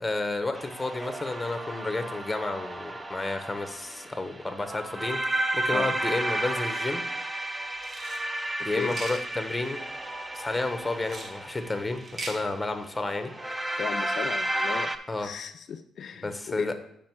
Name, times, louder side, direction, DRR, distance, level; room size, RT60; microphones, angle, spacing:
voice 1, 0.0-7.0 8.6-9.8 10.3-13.3 15.1-15.3 16.2-16.7, left 2 dB, 15° left, 7 dB, 0.9 m, -31 dB
sound 1, 0.5-15.0, right 1 dB, 15° right, 0.6 m, -33 dB
sound 2, 7.8-8.2 8.8-9.2 11.0-11.3 12.0-12.4, right 2 dB, 40° right, 1.4 m, -38 dB
voice 2, 13.8-14.9 15.2-16.7, left 7 dB, 60° left, 8 dB, 0.3 m, -36 dB
7.3 x 5.1 x 4.6 m, 0.73 s
cardioid pair, 90°, 0 cm